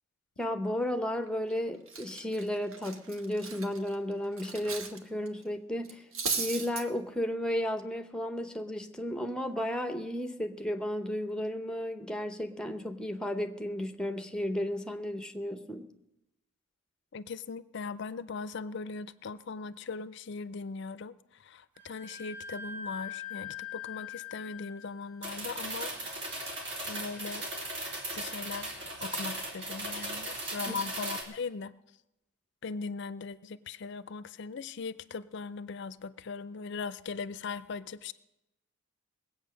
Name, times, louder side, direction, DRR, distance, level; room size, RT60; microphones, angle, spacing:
voice 1, 0.4-15.9 30.7-30.8, left 1 dB, 5° left, 7 dB, 0.7 m, -33 dB
Cutlery silverware, 1.3-1.5 1.9-5.0 5.3-5.4 5.8-6.8, right 5 dB, 75° right, 1.3 m, -36 dB
voice 2, 17.1-21.1 21.5-26.3 26.8-27.4 28.1-28.7 29.0-31.7 32.6-38.1, left 4 dB, 55° left, 15 dB, 0.4 m, -39 dB
Wind instrument woodwind instrument, 21.8-29.2, left 7 dB, 20° right, 6.4 m, -45 dB
sound 1, 25.2-31.2, right 1 dB, 55° right, 2.9 m, -37 dB
20.0 x 8.3 x 6.4 m, 0.92 s
head